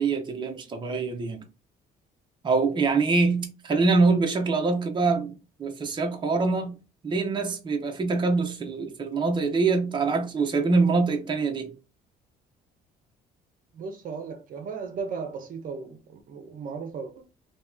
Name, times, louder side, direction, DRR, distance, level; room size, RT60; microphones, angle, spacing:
voice 1, 0.0-1.4 2.4-6.8 7.0-11.7, right 4 dB, 25° right, 0.8 m, -24 dB
voice 2, 13.7-17.3, right 5 dB, 55° right, 0.8 m, -36 dB
3.0 x 2.9 x 3.5 m
cardioid pair, 110°, 17 cm